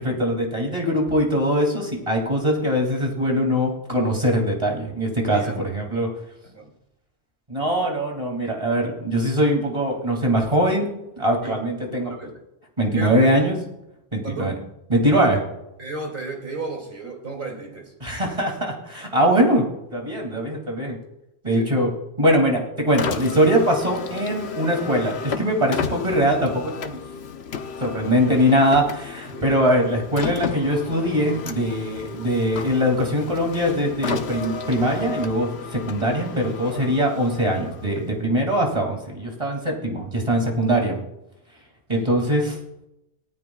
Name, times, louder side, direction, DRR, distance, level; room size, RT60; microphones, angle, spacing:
voice 1, 0.0-6.1 7.5-12.3 12.8-13.6 14.1-14.5 14.9-15.4 18.0-19.7 19.9-21.0 21.4-21.9 22.2-27.0 27.8-41.0 41.9-42.6, equal, 30° right, 1 dB, 2.6 m, -22 dB
voice 2, 5.3-5.7 6.4-6.7 7.6-7.9 11.4-11.6 12.0-12.4 12.9-13.5 14.2-14.5 15.1-15.3 15.8-17.9 21.5-21.7 29.3-29.5 36.6-36.8 42.0-42.1, right 2 dB, 50° right, 1 dB, 2.8 m, -34 dB
Car, 22.9-38.3, left 6 dB, 70° left, 1.1 m, -33 dB
18.5 x 13.5 x 2.3 m, 0.88 s
omnidirectional pair, 1.1 m